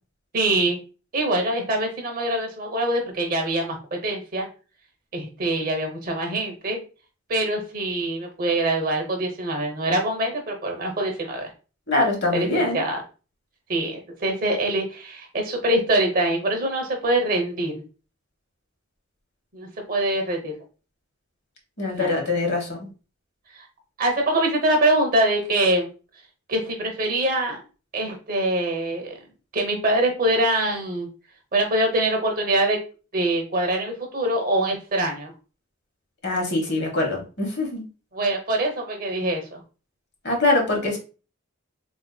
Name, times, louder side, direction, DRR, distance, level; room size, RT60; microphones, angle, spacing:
voice 1, 0.3-0.8 1.1-4.5 5.1-6.8 7.3-11.5 12.3-13.0 13.7-17.8 19.5-20.5 21.9-22.1 23.5-23.7 24.0-25.9 26.5-27.6 27.9-29.1 29.5-31.1 31.5-32.8 33.1-35.3 38.1-39.6, right 1 dB, 45° right, 2 dB, 0.8 m, -24 dB
voice 2, 11.9-12.8 21.8-22.9 36.2-37.8 40.2-41.0, left 2 dB, 55° left, 1 dB, 1.0 m, -23 dB
3.7 x 2.7 x 2.2 m, 0.34 s
head